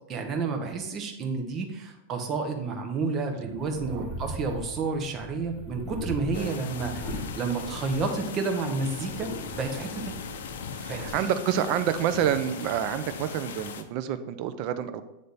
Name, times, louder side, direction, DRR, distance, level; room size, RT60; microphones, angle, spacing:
voice 1, 0.1-10.2 10.8-11.3, right 4 dB, 20° right, 3 dB, 0.7 m, -30 dB
sound 1, 3.6-8.4 8.7-11.1, equal, 10° left, 0.9 m, -39 dB
voice 2, 3.8-4.1 6.4-6.5 10.7-15.1, right 10 dB, 35° right, 10 dB, 0.4 m, -28 dB
sound 2, 6.3-13.8, left 6 dB, 80° left, 0.5 m, -39 dB
8.0 x 3.3 x 4.1 m, 0.93 s
supercardioid pair, 175°, 0 cm